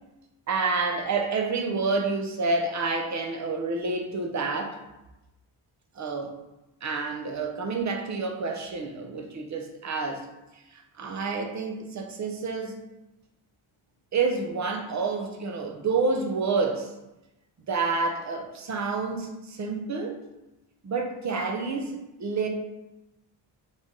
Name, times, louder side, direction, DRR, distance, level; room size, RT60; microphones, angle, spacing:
voice 1, 0.5-4.8 6.0-6.3 6.8-10.3 10.7-12.8 14.1-16.9 17.7-20.2 20.8-22.5, right 4 dB, 35° right, 3 dB, 0.7 m, -28 dB
4.0 x 3.3 x 3.6 m, 0.96 s
wide cardioid pair, 130°, 49 cm